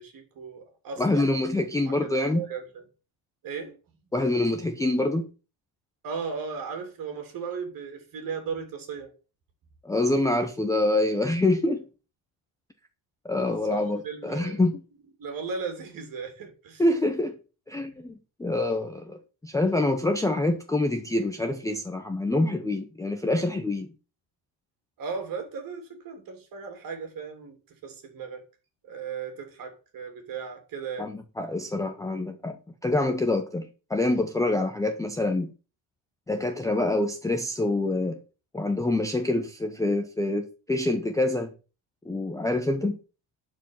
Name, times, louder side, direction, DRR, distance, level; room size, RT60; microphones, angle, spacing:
voice 1, 0.0-1.3 1.8-2.8 3.4-3.7 6.0-9.1 13.4-14.6 15.2-16.8 25.0-28.4 28.8-31.1, right 5 dB, 40° right, 3.1 m, -36 dB
voice 2, 1.0-2.4 4.1-5.3 9.8-11.8 13.2-14.8 16.8-17.4 17.7-19.2 19.4-23.9 31.0-32.6 32.8-35.5 36.3-38.2 38.5-41.5 42.1-43.0, left 2 dB, 5° left, 0.7 m, -26 dB
11.5 x 4.8 x 7.5 m
cardioid pair, 155°, 50 cm